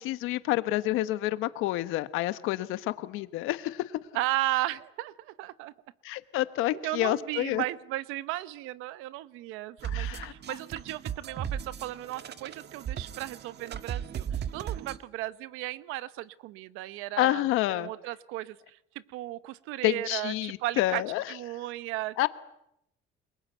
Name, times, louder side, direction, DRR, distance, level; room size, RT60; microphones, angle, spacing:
voice 1, 0.0-3.9 6.0-7.6 9.8-10.3 17.2-17.9 19.8-21.2 22.2-22.3, left 16 dB, 85° left, 13 dB, 1.2 m, -28 dB
voice 2, 4.1-5.7 6.8-17.4 17.8-21.0 21.3-22.3, right 16 dB, 90° right, 15 dB, 1.0 m, -35 dB
sound 1, 9.8-15.0, right 9 dB, 55° right, 1.7 m, -36 dB
29.5 x 22.5 x 8.2 m, 0.78 s
cardioid pair, 85°, 21 cm